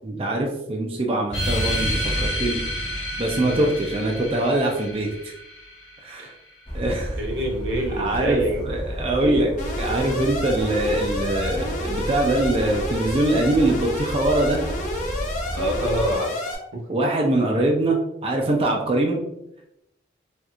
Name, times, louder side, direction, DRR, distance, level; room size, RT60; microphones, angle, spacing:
voice 1, 0.0-2.6 2.9-5.1 6.0-6.3 6.7-7.2 7.9-9.5 9.8-14.6 16.9-19.2, right 1 dB, 30° right, 0 dB, 0.4 m, -23 dB
sound 1, 1.3-6.3, equal, 80° left, 1.1 m, -29 dB
Bird vocalization bird call bird song, 6.7-16.2, equal, 25° left, 1.2 m, -32 dB
voice 2, 7.2-8.7 9.2-9.5 15.5-17.0, right 1 dB, 90° right, 1 dB, 0.9 m, -27 dB
Alarm, 9.6-16.6, left 1 dB, 40° left, 0.7 m, -30 dB
4.3 x 2.4 x 2.4 m, 0.84 s
head